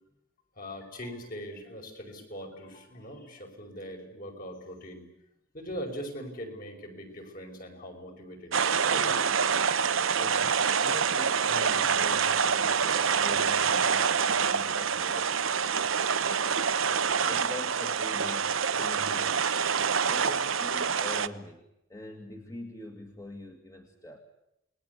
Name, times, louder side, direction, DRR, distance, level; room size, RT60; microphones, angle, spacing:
voice 1, 0.6-5.0 5.5-9.3, equal, 45° left, 3 dB, 5.6 m, -41 dB
sound 1, 8.5-21.3, right 6 dB, 80° right, 1.0 m, -26 dB
voice 2, 10.1-16.4 16.7-19.4 20.0-21.6 21.9-24.2, left 2 dB, 15° left, 3 dB, 2.0 m, -45 dB
28.0 x 21.0 x 8.3 m, 0.87 s
head